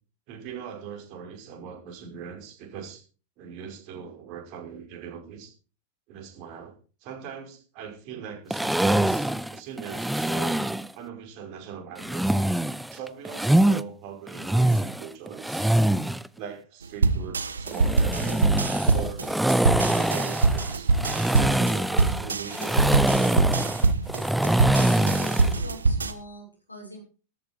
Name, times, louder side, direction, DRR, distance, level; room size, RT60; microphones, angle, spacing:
voice 1, 0.3-3.0 3.4-5.5 6.1-10.6 10.9-12.3 12.9-15.8 16.4-18.5 18.9-19.4 19.8-20.9 21.4-23.6, right 7 dB, 45° right, 3 dB, 5.4 m, -40 dB
sound 1, 8.5-10.9 12.0-13.8 14.3-16.3 17.7-25.6, right 1 dB, 5° right, 0.6 m, -24 dB
sound 2, 17.0-26.1, right 3 dB, 80° right, 1.2 m, -24 dB
voice 2, 24.9-27.0, left 1 dB, 90° left, 0 dB, 6.7 m, -42 dB
13.5 x 13.0 x 4.6 m, 0.37 s
figure-of-eight pair, 95°, 0 cm